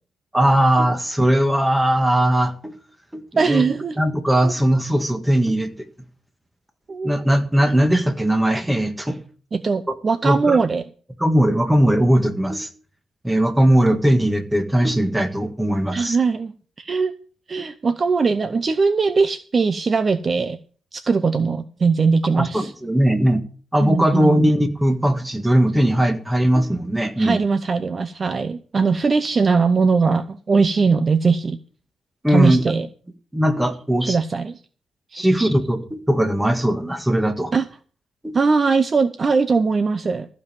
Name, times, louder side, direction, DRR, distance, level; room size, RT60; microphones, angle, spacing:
voice 1, 0.3-2.7 3.1-3.6 4.0-5.7 7.0-9.2 10.2-10.6 11.2-12.7 13.2-16.2 22.3-23.4 23.7-27.4 32.2-32.6 33.3-34.2 35.1-37.5 38.2-38.3, right 1 dB, 5° right, 7 dB, 1.7 m, -19 dB
voice 2, 3.4-4.0 4.4-4.5 6.9-7.1 9.5-10.8 15.9-17.1 17.5-20.6 20.9-22.7 23.8-24.6 27.2-31.6 32.3-32.9 34.1-34.6 35.1-35.4 37.5-37.6 38.3-40.3, right 4 dB, 35° right, 11 dB, 0.7 m, -20 dB
14.5 x 5.4 x 8.9 m, 0.41 s
cardioid pair, 125°, 0 cm